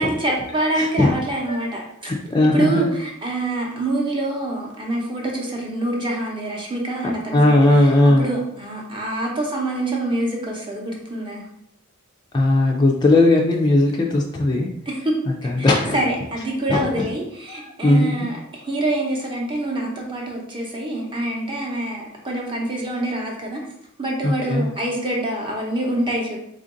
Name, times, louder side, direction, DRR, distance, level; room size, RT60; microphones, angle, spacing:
voice 1, 0.0-2.1 2.4-7.9 8.2-11.5 14.9-23.6 24.0-26.4, right 1 dB, 25° right, -1 dB, 0.8 m, -26 dB
voice 2, 0.8-1.1 1.5-1.6 2.0-2.9 7.3-8.2 12.3-14.7 15.4-16.0 16.7-17.1 17.5-18.3 24.2-24.7, left 2 dB, 20° left, -2 dB, 0.4 m, -18 dB
3.7 x 2.5 x 3.7 m, 0.78 s
head